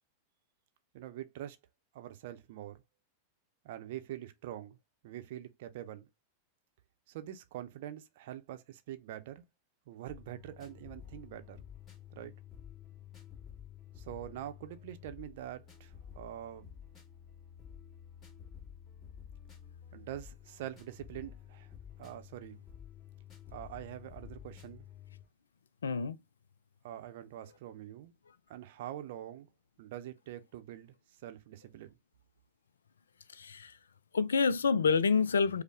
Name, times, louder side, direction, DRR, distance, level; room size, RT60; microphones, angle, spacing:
voice 1, 0.9-1.6 1.9-2.8 3.6-4.8 5.0-6.1 7.1-9.4 9.9-11.6 12.1-12.3 14.0-16.7 19.9-21.7 22.0-22.6 23.5-24.9 26.8-28.1 28.5-29.5 29.8-30.9 31.2-31.9, right 12 dB, 55° right, 0.7 m, -44 dB
sound 1, 10.1-25.3, left 9 dB, 25° left, 2.1 m, -51 dB
voice 2, 25.8-26.2 33.3-33.8 34.1-35.6, left 5 dB, 70° left, 0.4 m, -28 dB
5.2 x 2.2 x 3.4 m
figure-of-eight pair, 90°, 0 cm